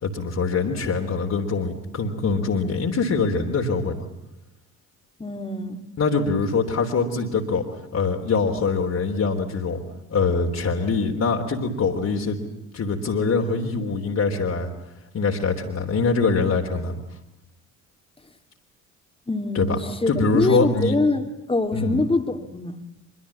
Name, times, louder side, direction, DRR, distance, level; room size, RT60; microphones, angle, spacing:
voice 1, 0.0-4.0 6.0-7.6 7.9-9.8 10.1-12.4 12.7-14.7 15.1-17.0 19.5-19.8 20.1-21.0 21.7-22.0, left 4 dB, 40° left, 0 dB, 3.4 m, -23 dB
voice 2, 5.2-5.8 19.3-22.8, left 2 dB, 15° left, 5 dB, 2.7 m, -24 dB
24.5 x 23.0 x 8.6 m, 0.91 s
figure-of-eight pair, 50°, 40 cm